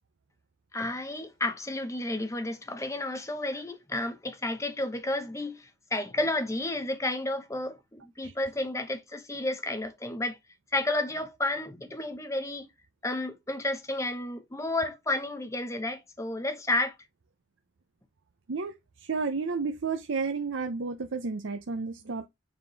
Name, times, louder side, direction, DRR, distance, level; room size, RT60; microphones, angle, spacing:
voice 1, 0.7-10.4 10.7-12.7 13.0-17.0, left 2 dB, 15° left, 0.9 m, -31 dB
voice 2, 19.0-22.3, right 4 dB, 70° right, 0.6 m, -31 dB
6.7 x 3.7 x 3.9 m
head